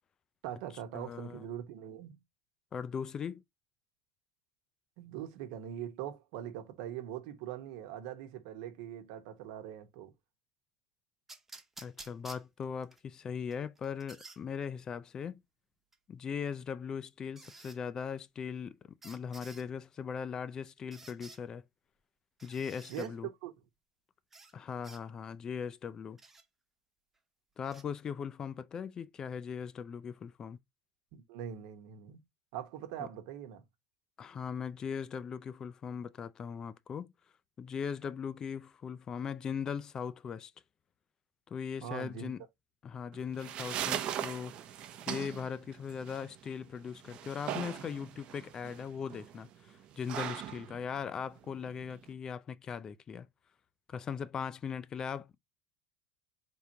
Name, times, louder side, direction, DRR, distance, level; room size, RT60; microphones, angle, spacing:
voice 1, 0.4-2.2 5.0-10.1 22.9-23.2 23.4-23.5 31.1-32.2 32.5-33.6 41.8-42.3, right 10 dB, 70° right, 1.1 m, -42 dB
voice 2, 0.9-1.4 2.7-3.4 11.8-15.4 16.1-21.6 22.4-23.3 24.5-26.2 27.6-30.6 33.0-33.1 34.2-37.1 37.6-40.5 41.5-42.4 42.8-44.6 45.1-53.3 53.9-55.4, left 7 dB, 25° left, 0.4 m, -39 dB
sound 1, 11.3-13.0 13.5-14.4 15.9-16.0 17.3-17.8 19.0-19.6 20.9-21.4 22.4-23.1 24.3-24.5 24.8-25.0 26.2-26.4 27.6-27.8, right 3 dB, 10° right, 0.9 m, -52 dB
sound 2, 43.1-52.1, right 10 dB, 45° right, 0.7 m, -40 dB
4.5 x 3.6 x 2.8 m
supercardioid pair, 130°, 3 cm